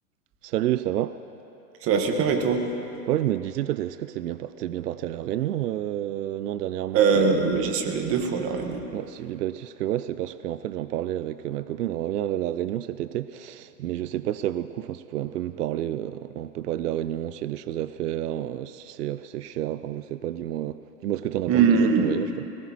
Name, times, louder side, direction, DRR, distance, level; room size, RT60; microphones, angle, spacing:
voice 1, 0.4-1.2 3.1-7.4 8.9-22.3, right 12 dB, 70° right, 14 dB, 0.5 m, -30 dB
voice 2, 1.8-2.6 6.9-8.8 21.5-22.1, right 5 dB, 25° right, 4 dB, 1.5 m, -22 dB
21.0 x 18.5 x 3.0 m, 2.9 s
hypercardioid pair, 115°, 50 cm